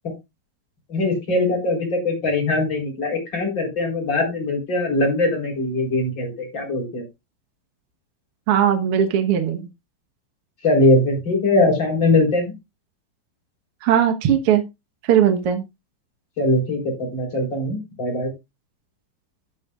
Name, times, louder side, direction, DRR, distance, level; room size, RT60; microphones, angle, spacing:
voice 1, 0.9-7.0 10.6-12.5 16.4-18.3, left 2 dB, 30° left, 0 dB, 4.4 m, -21 dB
voice 2, 8.5-9.7 13.8-14.6 15.0-15.6, right 9 dB, 60° right, 7 dB, 1.6 m, -18 dB
12.5 x 8.4 x 2.4 m, 0.23 s
omnidirectional pair, 4.0 m